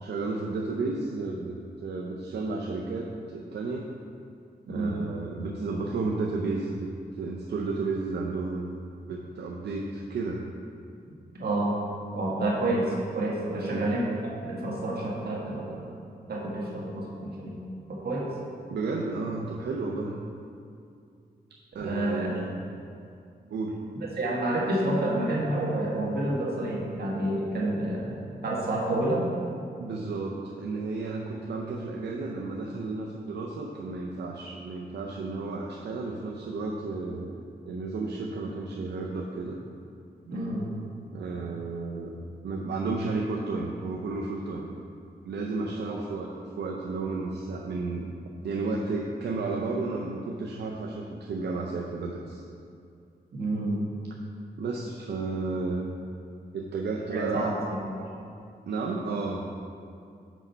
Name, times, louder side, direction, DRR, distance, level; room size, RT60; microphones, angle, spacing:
voice 1, 0.0-3.8 4.7-6.9 7.2-8.7 9.1-10.5 13.5-13.9 18.7-20.2 21.7-22.5 23.5-23.8 29.8-39.6 41.1-42.1 42.4-44.7 45.2-48.1 48.4-52.4 54.6-55.9 56.5-57.5 58.7-59.5, right 3 dB, 85° right, -1 dB, 0.6 m, -32 dB
voice 2, 11.3-11.8 12.1-14.1 14.4-15.9 16.3-17.6 17.9-18.3 21.7-22.4 24.2-29.3 40.3-40.7 45.9-46.0 53.3-53.8 57.1-58.1, right 1 dB, 65° right, -4 dB, 1.5 m, -29 dB
6.1 x 5.5 x 4.5 m, 2.4 s
cardioid pair, 80°, 17 cm